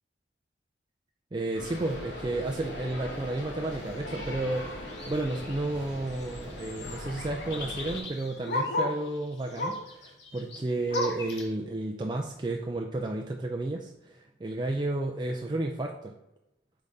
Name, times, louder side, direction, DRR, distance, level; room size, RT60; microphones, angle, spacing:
voice 1, 1.3-16.2, right 2 dB, 25° right, 1 dB, 0.4 m, -32 dB
sound 1, 1.5-8.0, left 1 dB, 90° left, 1.7 m, -40 dB
sound 2, 3.9-4.1 4.7-11.5, left 3 dB, 70° left, 1.4 m, -45 dB
Bark, 7.3-9.1 9.5-10.0 10.3-11.3 11.8-11.9 12.3-12.4 13.1-13.2, left 2 dB, 50° left, 0.8 m, -33 dB
5.5 x 4.0 x 4.8 m, 0.88 s
head